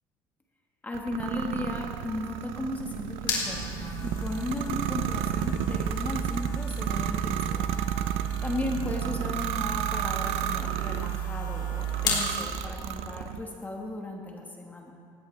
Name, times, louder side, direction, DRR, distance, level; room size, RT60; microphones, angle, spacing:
voice 1, 0.8-7.7 8.4-15.0, left 2 dB, 15° left, 1 dB, 1.6 m, -36 dB
sound 1, 0.9-11.2 11.8-13.5, right 11 dB, 85° right, 0.6 m, -33 dB
sound 2, 2.8-12.3, right 3 dB, 50° left, 4.5 m, -33 dB
18.0 x 16.0 x 3.4 m, 2.3 s
cardioid pair, 125°, 10 cm